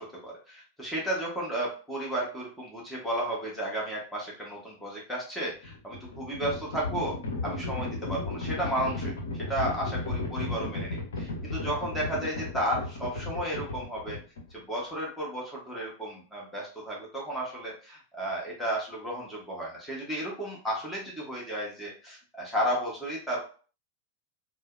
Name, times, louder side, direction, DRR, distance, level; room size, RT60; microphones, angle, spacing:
voice 1, 0.0-14.2 14.5-23.5, right 1 dB, 5° left, -4 dB, 1.1 m, -33 dB
Livestock farm animals working animals, 5.5-14.6, left 2 dB, 65° left, 0.8 m, -34 dB
4.5 x 2.1 x 2.5 m, 0.39 s
figure-of-eight pair, 90°, 0 cm